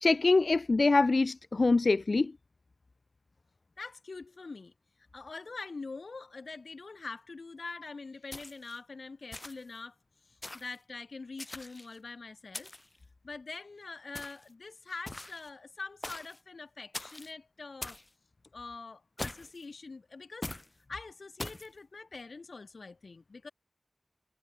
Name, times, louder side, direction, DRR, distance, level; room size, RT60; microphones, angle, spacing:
voice 1, 0.0-2.3, left 3 dB, 70° left, 0.4 m, -24 dB
voice 2, 3.8-4.7 5.1-10.0 10.2-12.7 13.2-18.0 18.5-20.5 20.9-23.5, left 3 dB, 85° left, 3.0 m, -44 dB
sound 1, 8.3-8.8 9.3-9.8 10.4-10.8 11.4-12.0 12.5-13.0 14.1-14.5 15.1-15.5 16.0-16.4 16.9-17.3 17.8-18.1 19.2-19.6 20.4-20.7 21.4-21.7, left 1 dB, 30° left, 5.4 m, -42 dB
wide cardioid pair, 70°, 0 cm